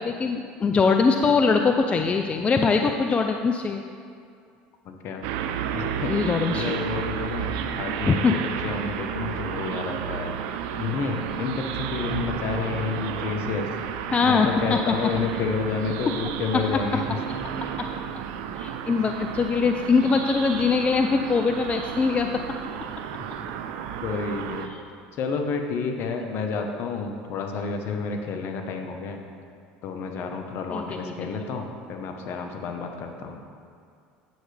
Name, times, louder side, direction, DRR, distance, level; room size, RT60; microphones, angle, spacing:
voice 1, 0.0-3.8 6.1-6.7 8.1-8.3 14.1-15.1 17.8-17.9 18.6-22.3 30.7-31.1, left 5 dB, 25° left, 5 dB, 0.4 m, -22 dB
voice 2, 4.8-5.3 5.7-6.1 6.5-10.3 10.8-13.7 14.2-17.2 18.8-18.9 24.0-24.7 25.2-29.2 29.8-33.4, left 5 dB, 55° left, 4 dB, 1.0 m, -30 dB
sound 1, 5.2-24.7, right 8 dB, 75° right, 0.5 m, -32 dB
9.3 x 7.6 x 3.3 m, 2.3 s
supercardioid pair, 90°, 5 cm